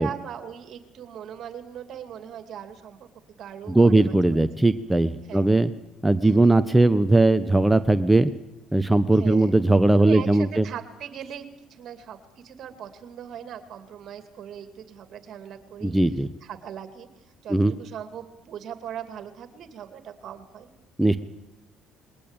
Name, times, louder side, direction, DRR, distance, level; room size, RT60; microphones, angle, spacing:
voice 1, 0.0-3.1 3.4-4.4 5.3-5.5 6.2-6.4 9.1-9.5 10.0-16.0 16.4-17.1 17.4-20.7, right 9 dB, 60° right, 9 dB, 2.5 m, -39 dB
voice 2, 3.7-5.7 6.0-8.3 8.7-10.7 15.8-16.3 17.5-17.7 21.0-21.2, right 2 dB, 10° right, 10 dB, 1.1 m, -19 dB
21.0 x 19.0 x 8.9 m, 0.90 s
supercardioid pair, 70°, 0 cm